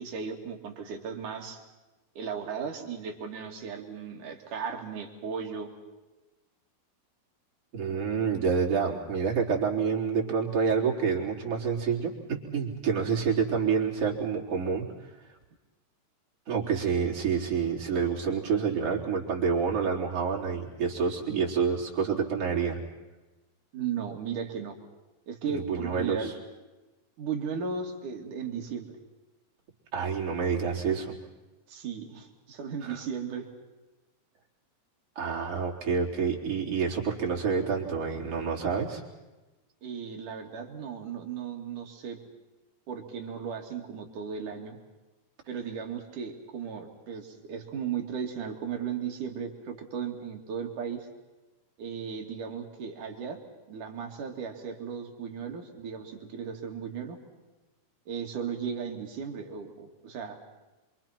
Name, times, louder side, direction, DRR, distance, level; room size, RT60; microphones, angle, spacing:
voice 1, 0.0-1.6 2.2-5.7 23.7-24.8 25.3-26.3 27.2-28.9 31.7-33.5 39.8-42.2 42.9-44.8 45.5-51.1 51.8-53.4 53.7-57.2 58.1-60.4, right 6 dB, 55° right, 3 dB, 3.8 m, -36 dB
voice 2, 7.7-15.1 16.5-22.8 25.5-26.3 29.9-31.1 32.8-33.0 35.2-39.0, right 6 dB, 35° right, -2 dB, 4.5 m, -28 dB
27.5 x 25.5 x 5.9 m, 1.1 s
omnidirectional pair, 4.7 m